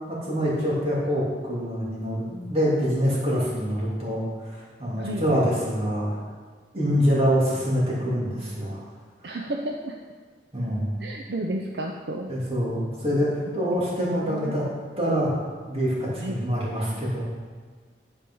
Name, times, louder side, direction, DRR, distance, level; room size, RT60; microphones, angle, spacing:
voice 1, 0.1-6.2 6.7-8.8 10.5-10.9 12.3-14.7 15.0-15.3 15.7-17.2, equal, 35° right, -5 dB, 2.6 m, -25 dB
voice 2, 9.2-9.9 11.0-12.3 13.7-14.6 16.2-16.3, right 1 dB, 65° right, 1 dB, 0.6 m, -32 dB
10.5 x 5.1 x 5.5 m, 1.6 s
head